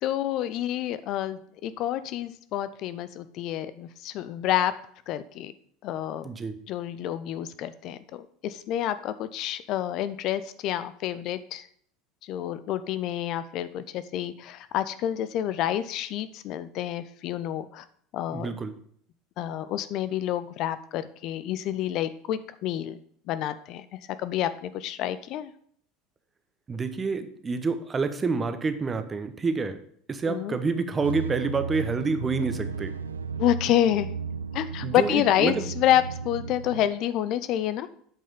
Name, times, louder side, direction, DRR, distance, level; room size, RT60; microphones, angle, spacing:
voice 1, 0.0-4.7 5.1-5.5 5.8-6.2 6.7-11.7 12.2-17.8 18.1-18.5 19.4-23.0 23.3-23.8 24.2-25.5 30.2-30.6 33.4-34.2 34.5-37.9, left 12 dB, 50° left, 13 dB, 0.5 m, -28 dB
voice 2, 6.2-6.6 18.3-18.7 26.7-29.8 30.1-32.9 34.8-35.7, right 4 dB, 25° right, 10 dB, 1.0 m, -28 dB
sound 1, 31.0-36.9, right 5 dB, 90° right, 0.4 m, -34 dB
8.3 x 5.5 x 5.2 m, 0.62 s
hypercardioid pair, 75°, 0 cm